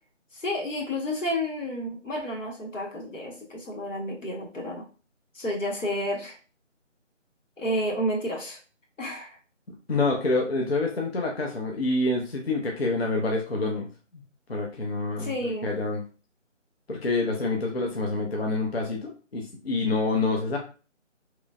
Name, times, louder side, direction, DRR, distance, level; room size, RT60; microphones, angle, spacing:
voice 1, 0.3-4.8 5.3-6.4 7.6-8.6 9.0-9.3 15.2-15.7, equal, 85° left, -1 dB, 1.2 m, -30 dB
voice 2, 9.9-13.9 14.1-14.2 14.5-16.0 16.9-20.6, left 3 dB, 55° left, -1 dB, 0.5 m, -27 dB
3.0 x 2.1 x 2.3 m, 0.36 s
figure-of-eight pair, 175°, 38 cm